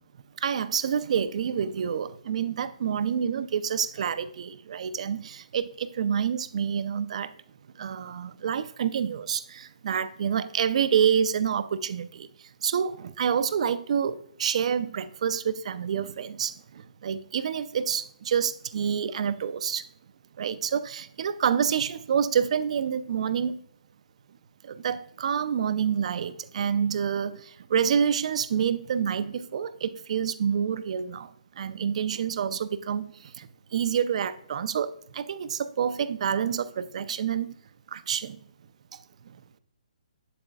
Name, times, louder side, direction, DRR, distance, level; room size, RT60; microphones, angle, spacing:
voice 1, 0.4-7.3 7.8-19.9 20.4-23.6 24.6-37.5 37.9-38.4 39.3-39.4, right 7 dB, 55° right, 14 dB, 0.5 m, -28 dB
7.9 x 7.7 x 2.4 m, 0.68 s
hypercardioid pair, 140°, 4 cm